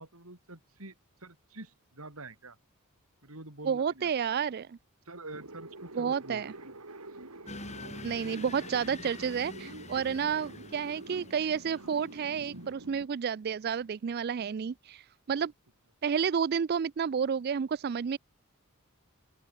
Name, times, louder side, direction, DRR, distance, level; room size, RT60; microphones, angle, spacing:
voice 1, 0.0-2.6 3.2-4.1 5.1-6.8 7.7-8.4 10.3-10.5, right 2 dB, 70° right, 5.6 m, -47 dB
voice 2, 3.7-4.8 6.0-6.5 8.0-15.5 16.0-18.2, right 7 dB, 45° right, 0.3 m, -31 dB
sound 1, 5.3-13.1, right 2 dB, 90° right, 4.2 m, -47 dB
sound 2, 7.5-12.7, left 2 dB, 30° left, 2.7 m, -46 dB
open air
head